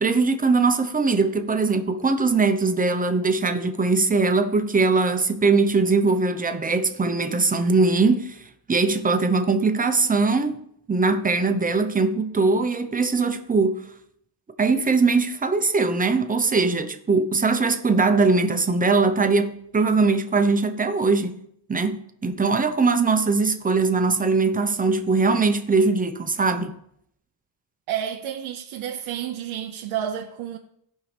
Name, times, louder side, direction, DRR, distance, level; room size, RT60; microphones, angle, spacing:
voice 1, 0.0-8.4 8.7-10.6 10.9-13.8 14.6-21.4 21.7-26.8, right 4 dB, 20° right, 0.8 m, -21 dB
voice 2, 27.9-30.6, right 9 dB, 85° right, 0.9 m, -30 dB
17.0 x 5.7 x 3.4 m
cardioid pair, 120°, 46 cm